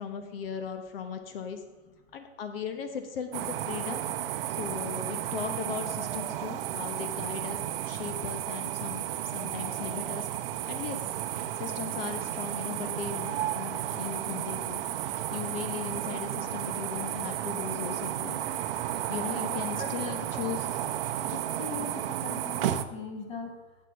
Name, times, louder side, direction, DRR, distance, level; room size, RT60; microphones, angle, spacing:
voice 1, 0.0-1.6 2.1-4.0 4.5-7.6 7.9-10.3 10.7-11.0 11.6-18.4 19.1-20.6, left 7 dB, 55° left, 7 dB, 1.1 m, -38 dB
sound 1, 3.3-22.9, right 11 dB, 55° right, 0.7 m, -33 dB
voice 2, 19.5-20.3 21.3-23.8, left 4 dB, 20° left, 4 dB, 1.5 m, -41 dB
8.2 x 7.7 x 6.4 m, 1.2 s
hypercardioid pair, 140°, 34 cm